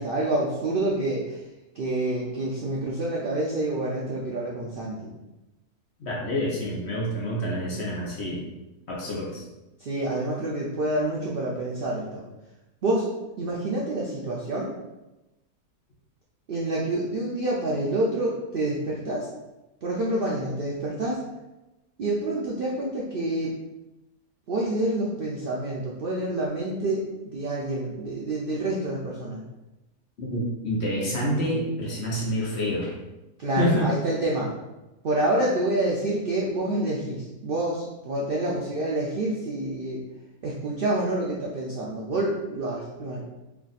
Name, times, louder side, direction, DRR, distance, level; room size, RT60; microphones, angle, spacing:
voice 1, 0.0-1.4 1.8-5.0 9.8-12.2 12.8-13.1 13.4-14.7 16.5-19.3 19.8-21.2 22.0-23.5 24.5-29.4 33.4-34.5 35.0-40.0 40.4-43.2, right 1 dB, 90° right, -4 dB, 0.4 m, -27 dB
voice 2, 6.0-8.4 8.9-9.4 30.2-32.9 33.5-33.9, equal, 50° left, -3 dB, 0.9 m, -27 dB
3.4 x 2.4 x 4.0 m, 0.99 s
omnidirectional pair, 1.7 m